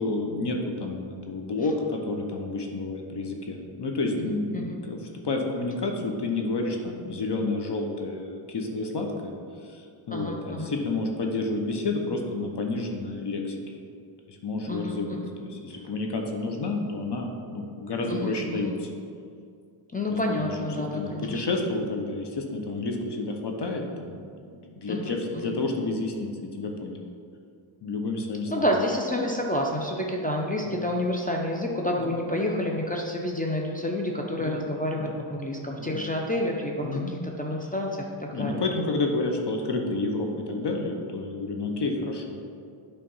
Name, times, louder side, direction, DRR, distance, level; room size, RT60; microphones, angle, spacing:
voice 1, 0.0-5.0 5.2-9.3 9.6-13.6 14.3-18.9 20.1-20.7 20.9-27.0 27.8-28.7 30.7-30.8 32.0-32.2 34.4-34.6 34.9-35.2 35.8-36.0 36.8-37.1 38.3-42.4, left 2 dB, 55° left, 2 dB, 1.0 m, -30 dB
voice 2, 4.2-4.8 10.1-10.7 14.7-15.3 18.1-18.7 19.9-21.4 24.9-25.5 28.5-38.6, left 1 dB, 15° left, 0 dB, 0.6 m, -29 dB
8.6 x 3.4 x 5.5 m, 2.3 s
wide cardioid pair, 95°, 50 cm